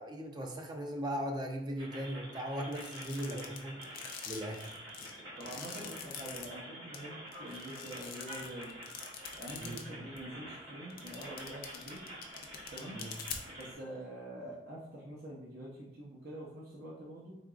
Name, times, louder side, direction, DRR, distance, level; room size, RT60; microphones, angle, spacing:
voice 1, 0.0-4.7 9.6-9.9 12.9-13.1, equal, 25° right, 3 dB, 0.4 m, -39 dB
sound 1, 1.8-13.7, equal, 75° right, 1.2 m, -48 dB
sound 2, 2.7-6.4 6.9-7.0 7.3-9.8 10.2-10.3 10.9-13.6, left 8 dB, 50° left, 0.5 m, -44 dB
voice 2, 5.4-8.8 9.4-12.0 12.7-13.0 13.6-17.4, right 1 dB, 55° right, -5 dB, 0.7 m, -46 dB
3.7 x 3.5 x 2.4 m, 0.87 s
head